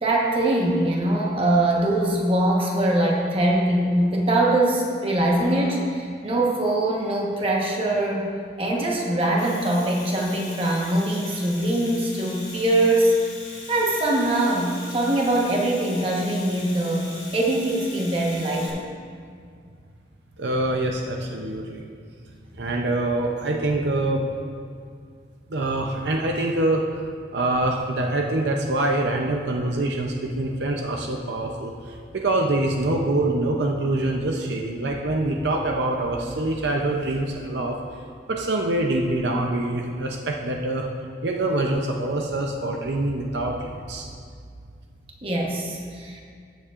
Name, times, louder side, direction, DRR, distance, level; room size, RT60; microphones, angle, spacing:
voice 1, 0.0-8.3 8.6-13.1 13.7-17.1 17.3-18.8 45.2-46.2, right 1 dB, 30° right, -2 dB, 1.2 m, -22 dB
Domestic sounds home sounds, 9.2-18.7, left 3 dB, 40° left, 2.3 m, -41 dB
voice 2, 20.4-21.8 22.6-24.3 25.5-27.1 27.3-37.8 38.3-40.9 41.2-44.1, right 2 dB, 70° right, 1 dB, 0.6 m, -25 dB
14.0 x 7.2 x 2.5 m, 2.2 s
head